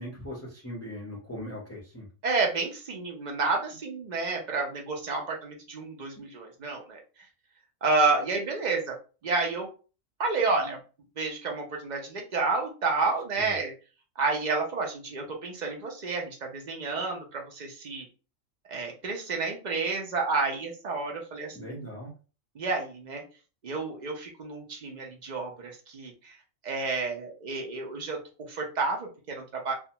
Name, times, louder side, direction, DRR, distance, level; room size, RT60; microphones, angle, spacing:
voice 1, 0.0-2.1 6.2-6.3 13.4-13.5 21.5-22.1, equal, 15° left, -5 dB, 0.7 m, -39 dB
voice 2, 2.2-7.0 7.8-9.0 9.2-9.7 10.2-10.8 11.2-13.7 14.2-18.0 18.7-21.9 22.5-23.2 23.6-26.4 26.6-28.2 28.5-29.7, right 3 dB, 55° right, 1 dB, 0.5 m, -30 dB
2.4 x 2.2 x 2.8 m, 0.35 s
omnidirectional pair, 1.4 m